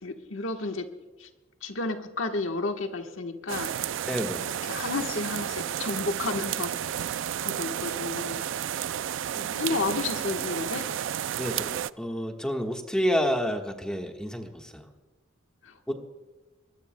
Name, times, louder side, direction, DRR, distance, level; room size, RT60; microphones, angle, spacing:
voice 1, 0.0-0.9 1.2-1.3 1.6-3.7 4.6-8.4 9.3-10.9 15.6-15.9, left 3 dB, 85° left, 4 dB, 1.3 m, -32 dB
sound 1, 3.5-11.9, right 10 dB, 70° right, 0.4 m, -32 dB
voice 2, 4.1-4.5 11.4-11.7 12.0-14.8 15.9-16.0, equal, 5° left, 2 dB, 1.4 m, -29 dB
23.0 x 20.5 x 2.2 m, 1.2 s
head